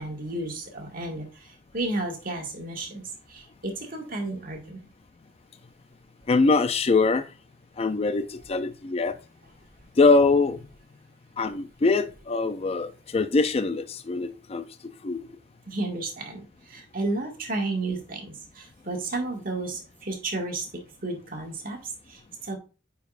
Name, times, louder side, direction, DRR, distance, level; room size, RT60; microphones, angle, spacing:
voice 1, 0.0-3.0 3.3-4.9 15.7-20.7 21.0-22.6, right 2 dB, 50° right, 1.9 m, -32 dB
voice 2, 6.3-7.3 7.8-9.2 10.0-10.6 11.4-14.6 15.0-15.2, left 3 dB, 35° left, 0.4 m, -23 dB
9.1 x 4.7 x 2.5 m
head